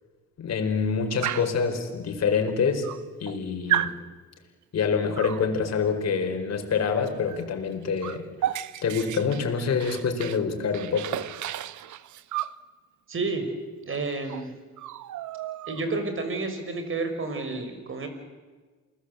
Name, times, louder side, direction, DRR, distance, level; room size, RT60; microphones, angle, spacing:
voice 1, 0.4-2.9 3.2-4.0 4.7-11.2, left 5 dB, 60° left, 5 dB, 4.7 m, -26 dB
Dog, 1.2-1.6 2.5-2.6 2.8-3.4 3.7-4.0 5.2-5.5 7.3-7.5 7.7-10.4 10.7-12.6 13.9-14.0 14.3-14.5 14.8-16.0, right 12 dB, 75° right, 1.0 m, -32 dB
voice 2, 13.1-13.4 13.8-14.5 15.7-18.1, right 3 dB, 45° right, 8 dB, 5.6 m, -30 dB
29.0 x 20.0 x 8.2 m, 1.4 s
cardioid pair, 90°, 30 cm